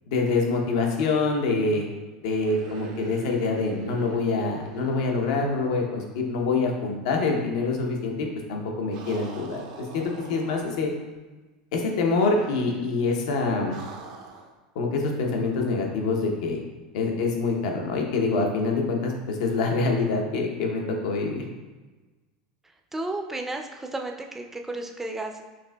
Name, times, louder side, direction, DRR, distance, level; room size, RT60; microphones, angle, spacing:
voice 1, 0.1-1.9 2.2-10.9 11.7-13.8 14.7-16.6 16.9-21.4, left 3 dB, 75° left, 1 dB, 0.7 m, -25 dB
sound 1, 2.4-6.5 6.8-6.9 8.9-10.9 12.3-13.0 13.7-14.6, right 5 dB, 70° right, 0.5 m, -43 dB
voice 2, 22.9-25.5, right 2 dB, 10° right, 3 dB, 0.4 m, -33 dB
5.8 x 2.6 x 2.2 m, 1.2 s
supercardioid pair, 110°, 4 cm